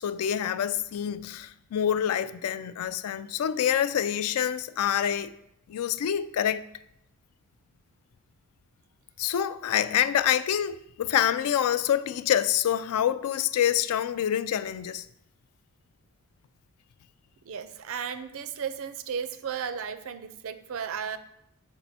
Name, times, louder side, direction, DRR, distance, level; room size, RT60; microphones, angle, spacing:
voice 1, 0.0-5.3 5.7-6.6 9.2-15.1, left 10 dB, 75° left, 0.3 m, -26 dB
voice 2, 17.4-21.2, right 7 dB, 65° right, 0.4 m, -34 dB
5.9 x 4.4 x 4.1 m
head